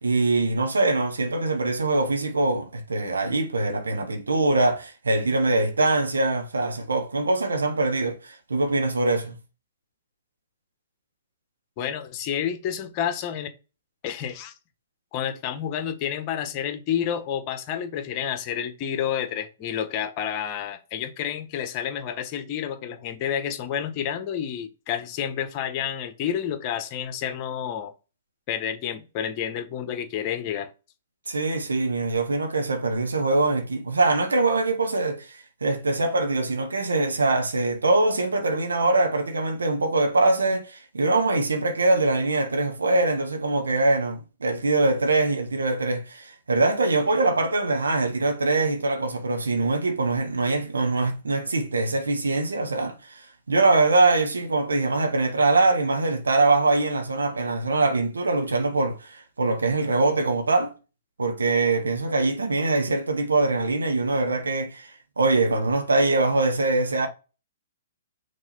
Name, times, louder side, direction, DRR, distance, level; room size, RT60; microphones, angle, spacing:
voice 1, 0.0-9.4 31.3-60.7 61.2-67.1, right 2 dB, 80° right, 1.3 m, -23 dB
voice 2, 11.8-13.5 14.0-14.5 15.1-27.9 28.5-30.7, left 9 dB, 35° left, 1.3 m, -29 dB
6.3 x 3.8 x 4.2 m
figure-of-eight pair, 120°, 0 cm